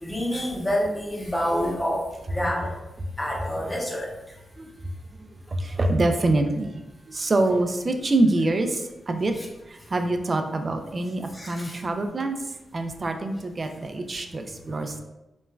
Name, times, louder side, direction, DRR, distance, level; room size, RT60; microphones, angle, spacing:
voice 1, 0.0-2.7 3.2-4.1 9.3-9.5 11.3-11.8, equal, 20° left, -3 dB, 0.8 m, -28 dB
voice 2, 5.2-9.3 9.7-12.4 12.7-15.0, right 2 dB, 40° right, 6 dB, 0.3 m, -25 dB
3.0 x 2.1 x 2.3 m, 0.97 s
cardioid pair, 60°, 0 cm